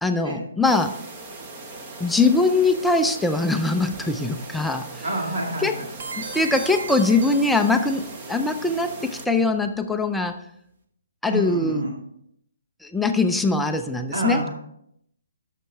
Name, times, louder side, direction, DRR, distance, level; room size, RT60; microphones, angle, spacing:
voice 1, 0.0-1.0 2.0-5.0 5.6-5.8 6.2-10.4 11.2-11.8 12.8-14.4, left 3 dB, ahead, 6 dB, 0.3 m, -22 dB
sound 1, 0.6-9.3, right 3 dB, 20° right, 0.8 m, -39 dB
voice 2, 5.0-5.9 11.3-11.9 14.1-14.5, right 1 dB, 70° right, -1 dB, 2.2 m, -27 dB
sound 2, 6.0-8.3, right 4 dB, 50° right, 1.2 m, -36 dB
9.3 x 6.6 x 3.4 m, 0.73 s
hypercardioid pair, 170°, 0 cm